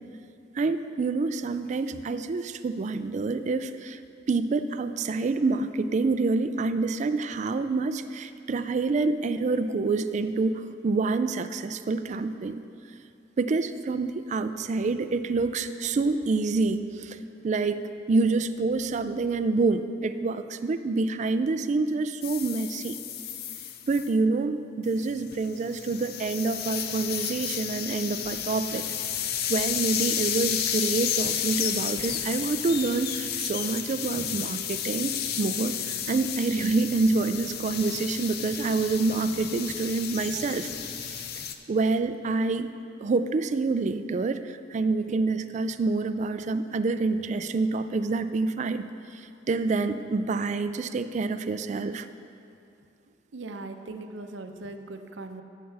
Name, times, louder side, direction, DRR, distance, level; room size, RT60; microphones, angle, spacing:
voice 1, 0.5-4.0 4.3-12.6 13.4-17.2 17.4-17.8 18.1-23.0 23.8-28.8 29.5-41.2 41.7-42.7 43.0-52.1, right 3 dB, 40° right, 11 dB, 0.3 m, -27 dB
sound 1, 22.2-24.1 24.9-41.5, left 9 dB, 55° left, 0.5 m, -32 dB
voice 2, 53.3-55.4, right 2 dB, 80° right, 7 dB, 0.6 m, -39 dB
14.5 x 6.6 x 3.4 m, 2.6 s
head